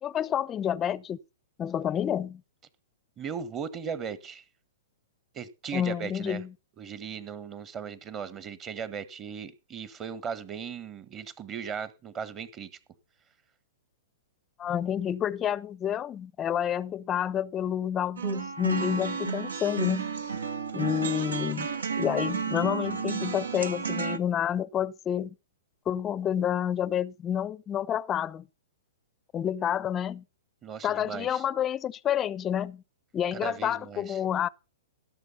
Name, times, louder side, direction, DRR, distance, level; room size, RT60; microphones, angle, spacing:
voice 1, 0.0-1.2 1.6-2.4 5.7-6.5 14.6-20.1 20.7-21.7 22.0-25.4 25.9-28.5 29.3-30.2 30.8-32.8 33.1-34.5, left 9 dB, 25° left, 0.6 m, -29 dB
voice 2, 3.2-4.4 5.3-6.4 6.8-12.7 30.6-31.4 33.3-34.2, right 7 dB, 25° right, 1.3 m, -37 dB
sound 1, 18.2-24.2, right 6 dB, 75° right, 1.2 m, -32 dB
16.5 x 6.8 x 5.6 m
figure-of-eight pair, 110°, 0 cm